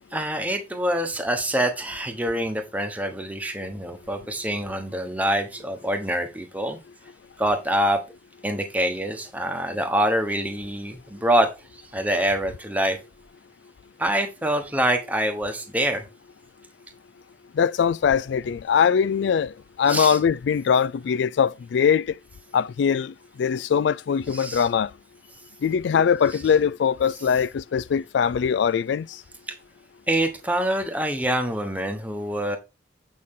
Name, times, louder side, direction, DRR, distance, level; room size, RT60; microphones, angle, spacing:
voice 1, 0.1-6.8 7.4-8.0 8.4-11.5 11.9-13.0 14.0-16.0 19.9-20.2 24.3-24.7 30.1-32.6, right 1 dB, 10° right, 1.2 m, -25 dB
voice 2, 17.6-22.1 22.5-24.9 25.6-29.1, left 7 dB, 65° left, 0.3 m, -22 dB
8.6 x 5.6 x 3.7 m
head